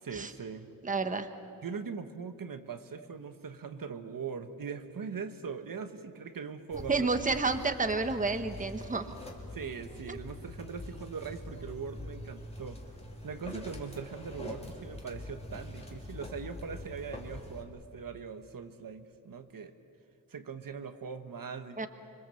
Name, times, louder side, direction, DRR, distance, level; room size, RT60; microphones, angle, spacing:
voice 1, 0.0-0.7 1.6-7.1 9.5-12.8 13.2-19.7 20.3-21.9, right 5 dB, 70° right, 8 dB, 1.2 m, -41 dB
voice 2, 0.8-1.3 6.9-9.0 10.1-10.2 21.8-21.9, right 3 dB, 20° right, 8 dB, 1.1 m, -30 dB
sound 1, 6.7-17.6, left 1 dB, 15° left, 2.6 m, -44 dB
26.0 x 23.0 x 7.7 m, 2.4 s
wide cardioid pair, 140°, 35 cm